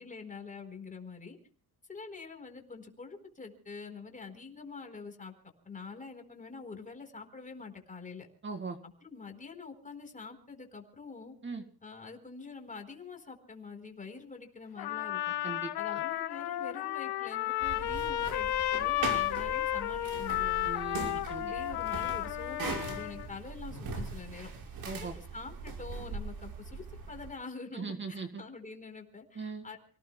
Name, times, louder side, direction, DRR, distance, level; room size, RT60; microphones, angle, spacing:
voice 1, 0.0-1.4 1.9-5.3 5.6-8.3 8.8-11.3 11.8-15.3 15.8-20.7 21.1-24.5 24.9-29.8, left 4 dB, 20° left, 5 dB, 4.3 m, -46 dB
voice 2, 8.4-8.8 11.4-11.6 15.4-16.0 20.6-21.8 24.8-25.1 27.7-28.4 29.4-29.7, right 4 dB, 30° right, 6 dB, 2.1 m, -40 dB
Trumpet, 14.8-23.3, left 14 dB, 75° left, 1.6 m, -33 dB
sound 1, 17.6-27.3, right 4 dB, 60° right, 5.8 m, -41 dB
29.5 x 18.5 x 2.3 m, 0.43 s
cardioid pair, 125°, 39 cm